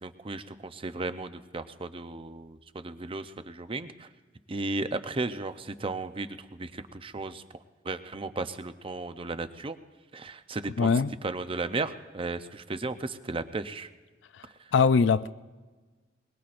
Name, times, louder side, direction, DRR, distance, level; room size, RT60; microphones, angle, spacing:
voice 1, 0.0-4.1 4.5-7.4 7.8-9.8 10.1-10.9 11.2-13.9 14.5-14.7, right 3 dB, 30° right, 0.6 m, -35 dB
voice 2, 10.8-11.1 14.7-15.3, left 5 dB, 75° left, 0.4 m, -21 dB
22.0 x 21.0 x 2.5 m
head